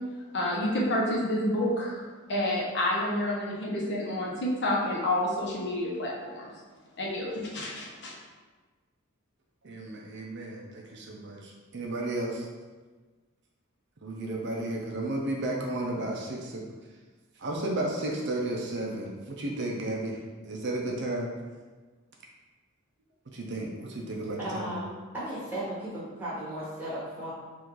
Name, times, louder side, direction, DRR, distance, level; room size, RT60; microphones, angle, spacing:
voice 1, 0.3-2.0 2.3-6.5 7.0-8.1, left 1 dB, 50° left, -4 dB, 0.9 m, -29 dB
voice 2, 9.6-12.5 14.0-16.6 17.4-21.3 23.3-24.7, right 1 dB, 50° right, -1 dB, 0.6 m, -33 dB
voice 3, 24.4-27.3, right 1 dB, 10° right, -11 dB, 1.4 m, -35 dB
3.7 x 2.6 x 4.6 m, 1.3 s
head